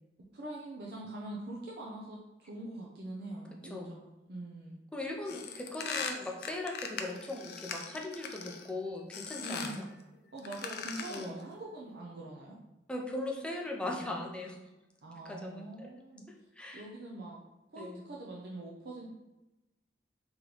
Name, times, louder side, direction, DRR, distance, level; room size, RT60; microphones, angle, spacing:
voice 1, 0.3-4.8 9.4-9.9 10.3-12.6 15.0-16.2 16.7-17.4 17.7-19.1, right 2 dB, 60° right, -3 dB, 0.5 m, -43 dB
voice 2, 4.9-9.8 11.1-11.4 12.9-14.6 15.2-15.9 16.3-16.9 17.8-18.0, left 2 dB, 5° left, 0 dB, 0.5 m, -39 dB
sound 1, 5.3-8.7 9.1-9.8 10.4-11.4, left 5 dB, 60° left, 0.4 m, -40 dB
3.8 x 3.0 x 3.1 m, 1.0 s
head